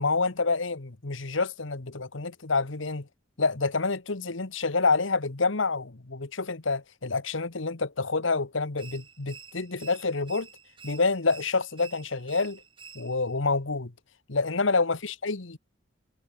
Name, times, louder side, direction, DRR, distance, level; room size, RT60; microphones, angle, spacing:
voice 1, 0.0-3.1 3.4-10.5 10.8-12.6 12.9-13.9 14.3-15.6, left 4 dB, 80° left, 1.4 m, -28 dB
sound 1, 8.8-13.4, right 6 dB, 25° right, 3.4 m, -49 dB
head